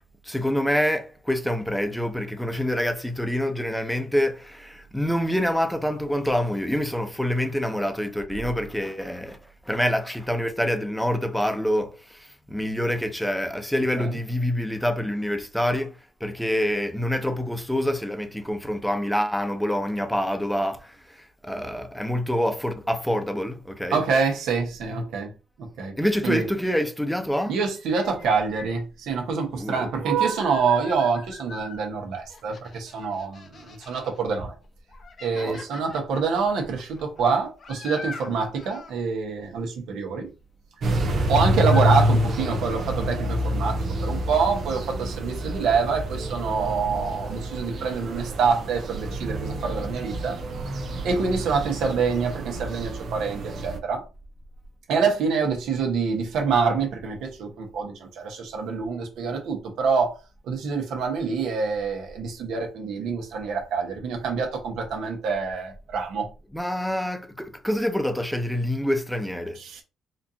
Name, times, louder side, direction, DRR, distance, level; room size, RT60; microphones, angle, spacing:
voice 1, 0.2-9.4 9.7-24.0 26.0-27.5 29.5-29.9 35.4-35.6 66.5-69.6, equal, ahead, 0.7 m, -26 dB
voice 2, 23.9-25.3 25.6-26.0 26.2-26.4 27.5-34.5 35.2-40.3 41.3-50.4 51.0-54.0 54.9-60.2 60.5-66.3 69.6-69.8, right 5 dB, 80° right, 1.2 m, -26 dB
sound 1, 27.4-28.8 29.8-31.8 32.2-34.2 34.6-39.0 41.0-41.3 41.6-42.0, left 4 dB, 50° left, 0.8 m, -43 dB
sound 2, 40.8-53.8, equal, 60° right, 0.7 m, -27 dB
4.3 x 2.6 x 2.8 m
cardioid pair, 90°, 0 cm